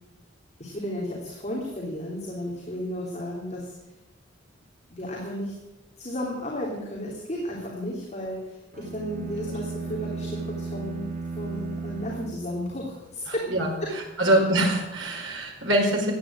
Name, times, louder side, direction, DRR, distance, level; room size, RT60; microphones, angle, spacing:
voice 1, 0.6-3.7 4.9-5.5 6.0-13.5 13.8-13.9, equal, 35° left, -3 dB, 3.1 m, -33 dB
sound 1, 8.7-13.1, right 4 dB, 45° right, 1.5 m, -35 dB
voice 2, 13.3-16.1, right 1 dB, 80° right, 0 dB, 4.9 m, -24 dB
15.0 x 9.9 x 8.6 m, 1.1 s
head